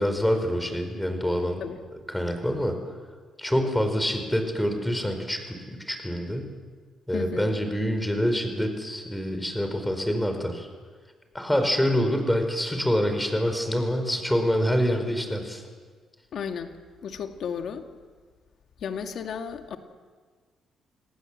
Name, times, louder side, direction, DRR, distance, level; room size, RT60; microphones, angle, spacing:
voice 1, 0.0-1.6 2.1-2.8 3.4-6.5 7.1-10.7 11.3-15.6, equal, 5° left, 6 dB, 5.0 m, -26 dB
voice 2, 7.1-7.5 16.3-17.8 18.8-19.8, left 7 dB, 65° left, 5 dB, 2.2 m, -34 dB
28.0 x 19.0 x 7.7 m, 1.5 s
cardioid pair, 90°, 0 cm